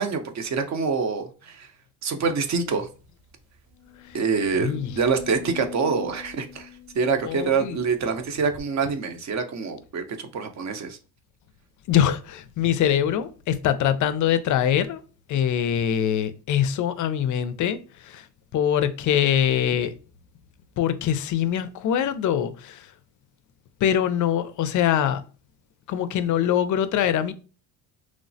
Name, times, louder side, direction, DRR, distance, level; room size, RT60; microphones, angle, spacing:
voice 1, 0.0-1.7 2.0-2.9 4.1-6.7 6.9-11.0, right 5 dB, 40° right, 0.6 m, -26 dB
sound 1, 2.6-2.7 3.0-3.1 3.7-7.9 8.6-8.7, left 12 dB, 60° right, 1.0 m, -42 dB
voice 2, 4.6-4.9 7.3-7.8 11.9-15.0 15.3-17.8 18.1-18.2 18.5-19.9 20.8-22.8 23.8-25.2 25.9-27.3, left 9 dB, 45° left, 0.4 m, -23 dB
3.1 x 2.0 x 2.6 m
supercardioid pair, 75°, 43 cm